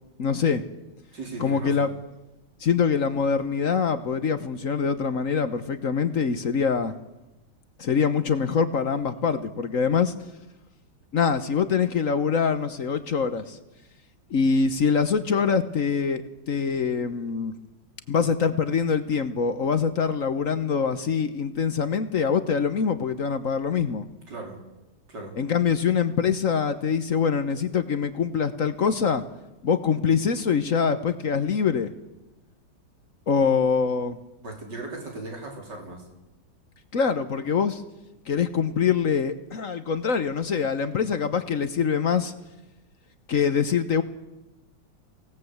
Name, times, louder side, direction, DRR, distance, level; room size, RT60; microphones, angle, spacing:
voice 1, 0.2-0.6 1.4-1.9 2.6-6.9 7.8-10.1 11.1-13.6 14.3-17.5 18.1-24.1 25.4-29.2 29.6-31.9 33.3-34.2 36.9-37.8 38.3-42.3 43.3-44.0, left 6 dB, 50° left, 11 dB, 1.2 m, -24 dB
voice 2, 1.1-1.9 24.3-24.6 25.1-25.4 34.4-36.1, right 3 dB, 55° right, 2 dB, 4.7 m, -37 dB
24.0 x 17.5 x 8.0 m, 1.0 s
omnidirectional pair, 2.2 m